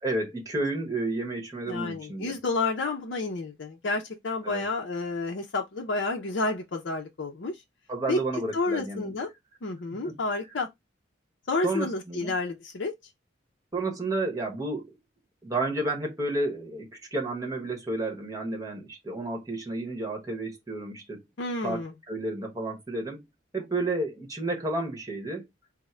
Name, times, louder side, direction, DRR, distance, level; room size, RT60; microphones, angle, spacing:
voice 1, 0.0-2.3 4.4-4.6 7.9-9.1 10.0-10.1 11.6-12.3 13.7-14.9 15.4-21.2 21.6-23.2 23.5-25.5, right 2 dB, 15° right, 1.0 m, -31 dB
voice 2, 1.7-7.6 8.1-8.2 8.5-9.3 9.6-10.7 11.5-12.9 21.4-21.9, left 3 dB, 60° left, 0.5 m, -30 dB
3.5 x 2.1 x 4.2 m
head